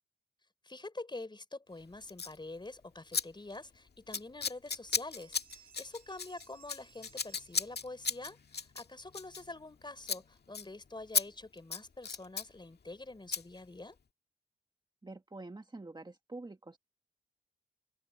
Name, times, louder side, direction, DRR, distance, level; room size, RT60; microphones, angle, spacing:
voice 1, 0.6-14.0, left 2 dB, 25° left, 4.2 m, -46 dB
Scissors, 2.1-2.4 3.1-3.2 3.5-3.8 4.1-9.8 10.0-10.2 10.5-10.7 11.1-11.3 11.6-12.5 13.3-13.4, left 5 dB, 60° left, 1.9 m, -35 dB
sound 1, 4.0-4.1 4.5-4.8 5.0-8.2, right 9 dB, 55° right, 6.7 m, -63 dB
voice 2, 15.0-16.8, right 2 dB, 25° right, 1.6 m, -46 dB
wide cardioid pair, 80°, 19 cm